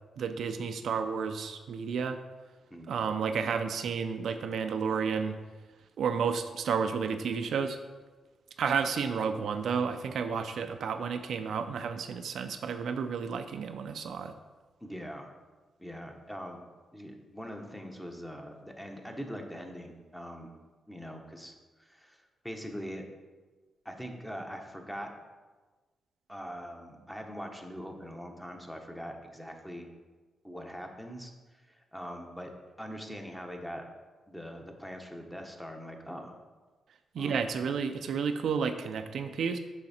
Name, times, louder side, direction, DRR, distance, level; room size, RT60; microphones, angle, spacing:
voice 1, 0.2-2.2 2.9-5.4 6.0-7.8 8.6-14.3 37.1-39.6, right 6 dB, 75° right, 8 dB, 0.4 m, -31 dB
voice 2, 14.8-15.3 15.8-16.6 16.9-20.5 20.9-21.5 21.8-22.2 22.4-23.0 23.8-25.1 26.3-29.9 30.4-32.5 32.8-33.8 34.3-36.3 37.1-37.4, equal, 5° left, 3 dB, 1.1 m, -42 dB
6.4 x 5.7 x 4.3 m, 1.3 s
cardioid pair, 80°, 0 cm